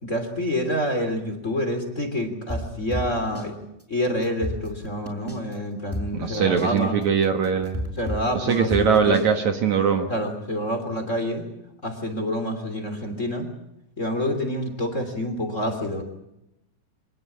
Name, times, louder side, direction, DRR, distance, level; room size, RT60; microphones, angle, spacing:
voice 1, 0.0-3.5 3.9-7.0 8.0-9.4 10.1-11.4 11.8-13.5 14.0-16.0, equal, 20° left, 7 dB, 2.9 m, -27 dB
sound 1, 2.5-3.5 3.8-3.9 4.2-5.5 5.9-9.3, equal, 5° right, 5.3 m, -31 dB
voice 2, 6.1-7.8 8.3-10.1, right 6 dB, 60° right, 6 dB, 2.5 m, -21 dB
25.5 x 19.5 x 8.5 m, 0.85 s
omnidirectional pair, 4.2 m